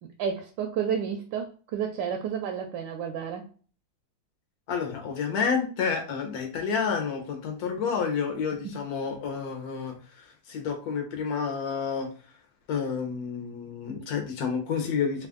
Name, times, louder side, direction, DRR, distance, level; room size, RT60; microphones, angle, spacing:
voice 1, 0.0-3.5 8.6-8.7, right 7 dB, 75° right, 1.2 m, -31 dB
voice 2, 4.7-12.1 12.7-15.3, left 6 dB, 55° left, 1.2 m, -30 dB
3.5 x 2.4 x 3.6 m
omnidirectional pair, 2.2 m